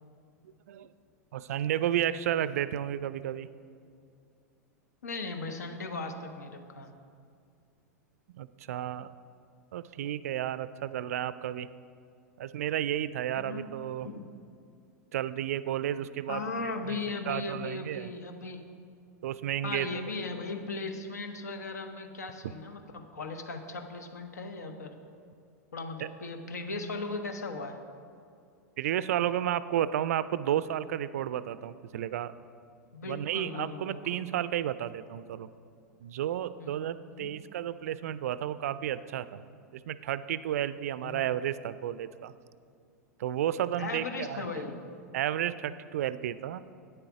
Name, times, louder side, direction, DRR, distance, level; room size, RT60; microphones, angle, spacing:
voice 1, 1.3-3.5 8.3-9.1 9.7-11.7 12.4-14.1 15.1-16.4 16.9-17.0 17.3-18.1 19.2-20.0 26.0-26.1 28.8-32.3 33.1-35.5 36.0-39.4 39.7-42.3 43.2-44.5 45.1-46.7, right 11 dB, 65° right, 15 dB, 0.3 m, -32 dB
voice 2, 5.0-6.9 13.3-13.7 14.0-14.3 16.3-18.6 19.6-24.9 25.7-27.8 32.9-34.2 36.6-37.3 41.0-41.2 43.8-45.0, left 3 dB, 75° left, 6 dB, 0.9 m, -37 dB
8.9 x 7.7 x 4.9 m, 2.3 s
figure-of-eight pair, 95°, 9 cm